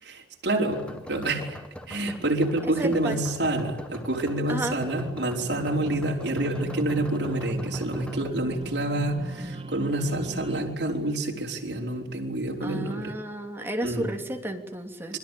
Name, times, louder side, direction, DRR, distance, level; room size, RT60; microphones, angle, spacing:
voice 1, 0.0-1.6 1.9-13.1 13.8-14.1 15.1-15.2, right 1 dB, 70° right, -1 dB, 4.8 m, -28 dB
sound 1, 0.7-8.3, equal, 5° left, 1.8 m, -43 dB
voice 2, 2.8-3.2 4.5-4.8 12.6-15.2, right 1 dB, 15° right, 3 dB, 3.0 m, -32 dB
sound 2, 4.8-10.8, right 1 dB, 30° right, 1.7 m, -35 dB
28.5 x 23.0 x 8.5 m, 1.1 s
head